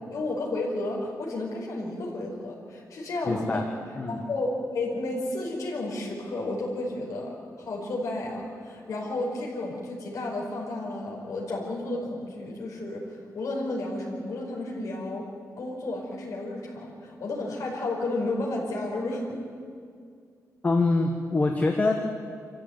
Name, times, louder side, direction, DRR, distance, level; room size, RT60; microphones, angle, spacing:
voice 1, 0.1-3.6 4.1-15.3 15.6-19.3, left 2 dB, 60° left, -3 dB, 5.4 m, -32 dB
voice 2, 3.3-3.6 3.9-4.2 20.6-21.9, left 3 dB, 25° left, 3 dB, 1.5 m, -24 dB
26.5 x 14.5 x 9.2 m, 2.2 s
wide cardioid pair, 165°, 6 cm